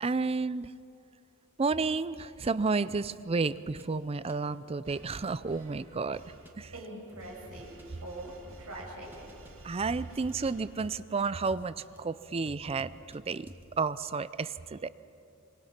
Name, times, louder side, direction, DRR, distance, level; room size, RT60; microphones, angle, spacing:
voice 1, 0.0-0.7 1.6-6.2 6.6-6.7 9.6-13.5 13.8-14.9, right 4 dB, 25° right, 16 dB, 0.4 m, -31 dB
sound 1, 1.8-1.9 2.5-2.6 3.1-3.8 4.3-4.6 5.0-5.2 5.5-5.6 6.1-6.5 7.1-7.8 8.5-9.5 9.8-12.0 12.5-13.2 13.5-13.7, equal, 10° right, 1.9 m, -52 dB
sound 2, 4.8-11.2, right 1 dB, 65° right, 2.5 m, -54 dB
voice 2, 6.7-9.3, right 1 dB, 85° right, -1 dB, 6.0 m, -43 dB
26.5 x 23.5 x 5.9 m, 2.7 s
head